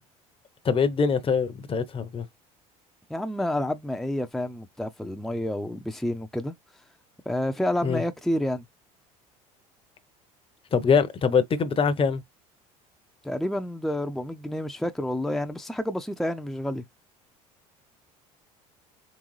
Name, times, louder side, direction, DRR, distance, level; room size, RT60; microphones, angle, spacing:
voice 1, 0.6-2.2 7.8-8.0 10.7-12.2, left 5 dB, 30° left, 0.8 m, -23 dB
voice 2, 3.1-6.5 7.3-8.6 13.2-16.8, left 1 dB, ahead, 0.6 m, -29 dB
4.0 x 3.5 x 3.1 m
hypercardioid pair, 75°, 18 cm